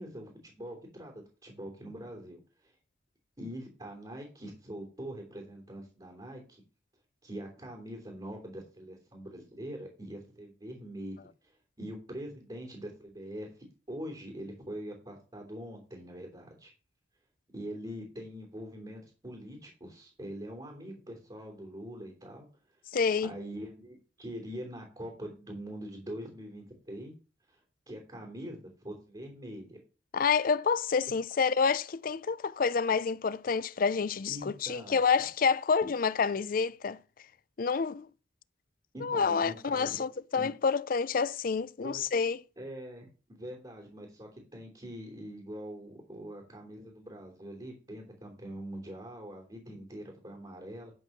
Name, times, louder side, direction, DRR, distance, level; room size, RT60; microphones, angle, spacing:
voice 1, 0.0-2.7 3.4-6.6 7.2-13.5 13.9-16.7 17.5-22.5 23.2-27.1 27.5-27.6 27.9-29.8 34.3-35.0 38.9-40.1 40.4-40.5 41.8-42.0 42.6-50.9, equal, 25° right, 3.2 m, -43 dB
voice 2, 22.9-23.3 30.1-37.0 37.6-38.1 39.0-42.4, left 5 dB, 50° left, 0.5 m, -28 dB
11.5 x 4.6 x 6.6 m
head